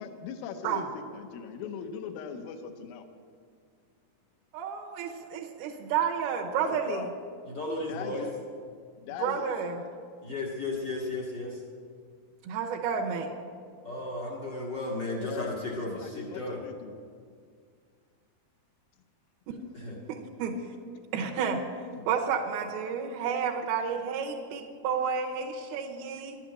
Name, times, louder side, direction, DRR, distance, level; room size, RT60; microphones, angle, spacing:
voice 1, 0.0-3.0 6.6-7.1 7.9-8.4 9.0-9.5 15.2-16.9, left 7 dB, 75° left, 6 dB, 2.5 m, -39 dB
voice 2, 4.5-7.1 9.2-9.8 12.4-13.3 20.1-20.6 21.1-21.6 22.1-26.4, right 7 dB, 80° right, 0 dB, 2.7 m, -31 dB
voice 3, 7.5-8.3 10.2-11.6 13.8-16.6 19.7-20.0 22.0-22.1, left 2 dB, 60° left, -3 dB, 1.1 m, -34 dB
11.5 x 8.9 x 9.7 m, 2.1 s
omnidirectional pair, 4.5 m